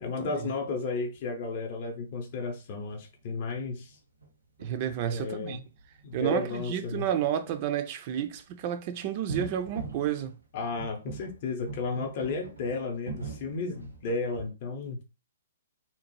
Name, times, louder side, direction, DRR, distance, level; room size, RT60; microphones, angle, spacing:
voice 1, 0.0-3.9 5.1-5.6 6.0-7.0 10.5-15.0, left 3 dB, 45° left, 0.5 m, -33 dB
sound 1, 0.6-0.7 1.1-1.2 1.8-1.9 2.2-2.3 2.5-2.6 2.9-4.3 4.6-6.5 7.4-7.6 8.3-8.4 9.3-14.5, right 4 dB, 90° right, 0.9 m, -42 dB
voice 2, 4.6-5.6 6.1-10.4, right 10 dB, 40° right, 0.3 m, -31 dB
2.8 x 2.0 x 2.9 m
figure-of-eight pair, 120°, 0 cm